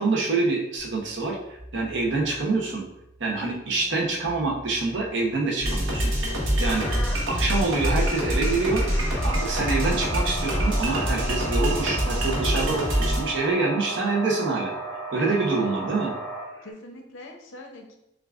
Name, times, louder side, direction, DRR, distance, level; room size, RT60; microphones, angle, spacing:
voice 1, 0.0-2.8 3.2-6.1 6.6-6.9 7.3-8.8 9.2-14.8 15.1-16.1, right 3 dB, 65° right, 0 dB, 0.8 m, -26 dB
sound 1, 0.8-12.2, right 1 dB, 30° right, 0.9 m, -50 dB
sound 2, 5.6-13.2, equal, 85° right, 1.2 m, -25 dB
voice 2, 6.2-6.8 10.8-11.5 12.4-12.7 13.6-13.8 15.2-15.7 16.6-18.0, left 2 dB, 80° left, 3 dB, 0.7 m, -44 dB
sound 3, 6.6-16.7, right 1 dB, 15° left, 0.7 m, -35 dB
6.8 x 2.4 x 2.4 m, 0.83 s
head